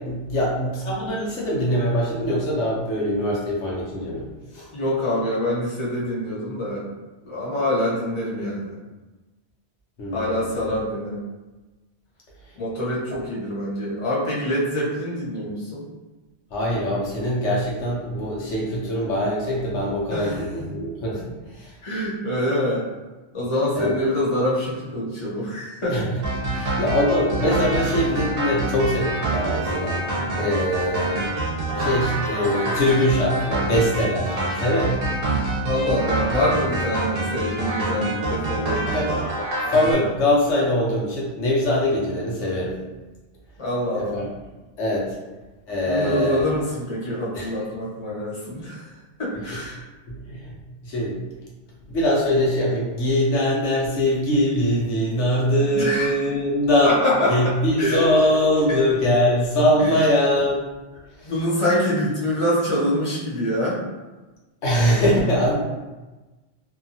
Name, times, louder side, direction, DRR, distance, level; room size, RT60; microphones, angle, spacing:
voice 1, 0.0-4.3 4.5-4.7 10.0-10.6 16.5-21.2 21.5-21.7 23.7-24.0 25.9-26.2 26.5-30.0 30.4-31.3 31.8-34.9 38.9-39.1 39.7-42.7 44.0-44.3 44.8-45.1 45.7-46.4 47.3-47.5 49.5-49.6 50.1-50.5 50.8-51.2 51.9-56.9 57.3-60.6 61.2-61.3 64.6-65.6, left 1 dB, 85° left, -4 dB, 1.1 m, -22 dB
voice 2, 4.7-6.9 7.2-8.8 10.1-11.2 12.6-15.8 20.1-20.7 21.8-22.9 23.3-26.1 30.1-30.4 35.6-38.9 43.6-44.2 45.9-48.9 49.2-49.9 55.7-56.1 56.8-58.1 58.7-58.8 59.8-60.0 61.2-63.8, left 1 dB, 30° left, -7 dB, 0.8 m, -25 dB
sound 1, 26.2-39.9, right 2 dB, 60° right, 0.8 m, -26 dB
2.7 x 2.3 x 2.6 m, 1.2 s
omnidirectional pair, 1.2 m